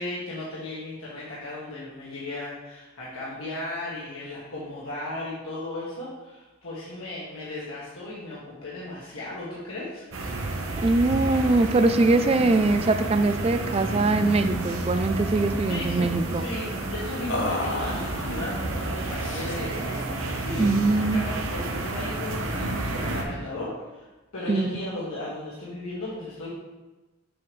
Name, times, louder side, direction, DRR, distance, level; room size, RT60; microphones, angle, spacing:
voice 1, 0.0-10.6 15.7-26.5, left 2 dB, 90° left, -7 dB, 1.6 m, -36 dB
sound 1, 10.1-23.2, right 2 dB, 85° right, 1.0 m, -30 dB
voice 2, 10.8-16.4 20.6-21.2 24.5-24.7, right 3 dB, 30° right, 10 dB, 0.3 m, -22 dB
sound 2, 14.5-14.6 14.9-15.7 17.3-18.5 19.2-19.8, left 2 dB, 60° left, 0.8 m, -33 dB
7.0 x 7.0 x 3.2 m, 1.1 s
head